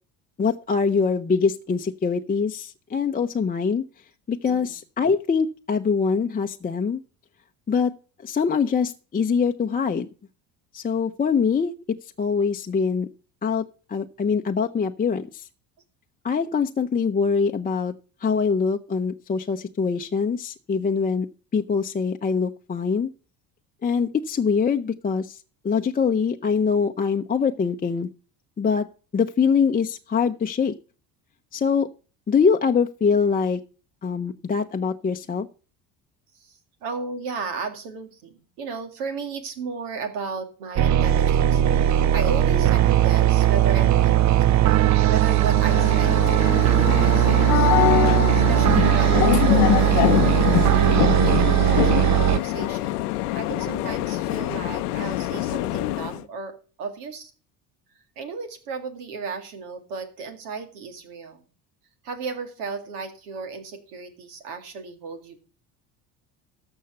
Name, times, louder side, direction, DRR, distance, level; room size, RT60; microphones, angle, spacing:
voice 1, 0.4-3.8 4.3-7.0 7.7-7.9 8.2-10.1 10.7-11.7 12.2-13.1 13.4-13.6 13.9-15.4 16.2-17.9 18.2-21.3 21.5-23.1 23.8-25.4 25.6-28.1 28.6-28.8 29.1-30.7 31.5-31.9 32.3-33.6 34.0-35.5, left 5 dB, 20° left, 4 dB, 0.6 m, -23 dB
voice 2, 36.3-44.2 44.6-47.7 48.1-50.5 51.2-57.3 58.2-61.5 62.0-65.4, right 4 dB, 85° right, 7 dB, 2.1 m, -35 dB
sound 1, 40.8-52.4, right 13 dB, 40° right, 0.5 m, -19 dB
sound 2, 45.4-56.2, left 16 dB, 85° left, 0.7 m, -24 dB
14.0 x 5.6 x 6.6 m, 0.37 s
hypercardioid pair, 70°, 45 cm